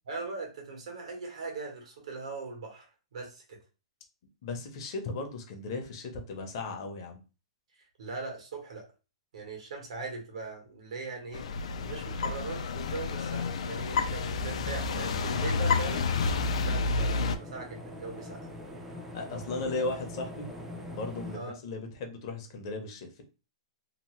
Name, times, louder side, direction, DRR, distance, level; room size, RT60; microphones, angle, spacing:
voice 1, 0.1-2.8 3.1-3.6 7.8-8.8 9.3-11.5 11.8-16.1 16.6-18.5 21.3-21.6, right 4 dB, 75° right, 2 dB, 1.2 m, -40 dB
voice 2, 4.4-7.2 19.1-20.5 20.9-23.2, left 3 dB, 45° left, 4 dB, 0.7 m, -36 dB
sound 1, 11.3-17.4, left 4 dB, 75° left, 0.4 m, -30 dB
sound 2, 15.8-21.4, left 1 dB, 10° right, 0.4 m, -43 dB
2.9 x 2.0 x 3.0 m, 0.32 s
hypercardioid pair, 165°, 3 cm